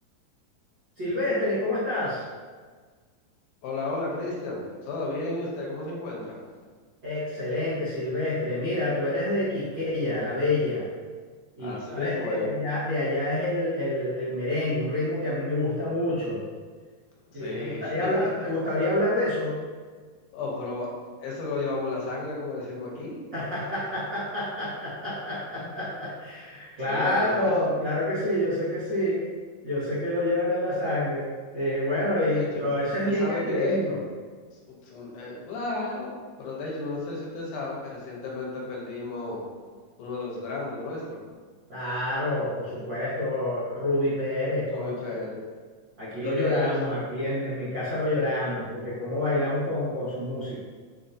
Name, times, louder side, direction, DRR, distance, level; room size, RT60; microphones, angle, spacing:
voice 1, 1.0-2.2 7.0-10.9 11.6-16.4 17.3-19.6 23.3-29.2 29.6-34.0 41.7-45.2 46.0-50.6, left 1 dB, 65° right, -12 dB, 1.1 m, -27 dB
voice 2, 3.6-6.4 11.6-12.6 17.3-18.1 18.4-18.5 20.3-20.9 21.2-23.2 25.6-25.8 26.8-27.5 32.3-32.7 33.0-33.9 34.7-36.1 36.4-39.4 40.0-41.2 44.7-45.4 46.2-46.9, left 3 dB, 75° left, -3 dB, 2.2 m, -33 dB
6.3 x 2.6 x 2.5 m, 1.5 s
omnidirectional pair, 3.9 m